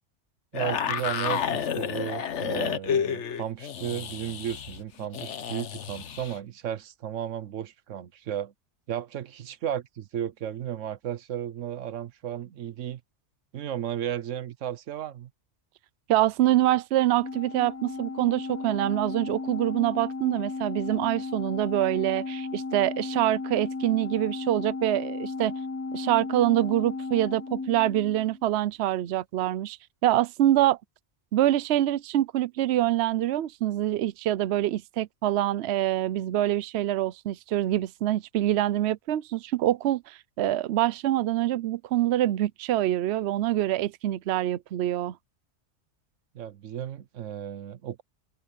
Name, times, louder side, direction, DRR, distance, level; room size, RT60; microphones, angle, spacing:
sound 1, 0.5-6.3, left 7 dB, 70° left, 1.2 m, -30 dB
voice 1, 0.5-8.5 8.9-13.0 13.5-15.3 46.3-48.0, right 10 dB, 90° right, 1.2 m, -34 dB
voice 2, 16.1-25.5 25.9-29.8 30.0-30.8 31.3-45.1, right 13 dB, 65° right, 0.8 m, -25 dB
Organ, 17.2-28.5, left 3 dB, 20° left, 0.4 m, -35 dB
omnidirectional pair, 1.2 m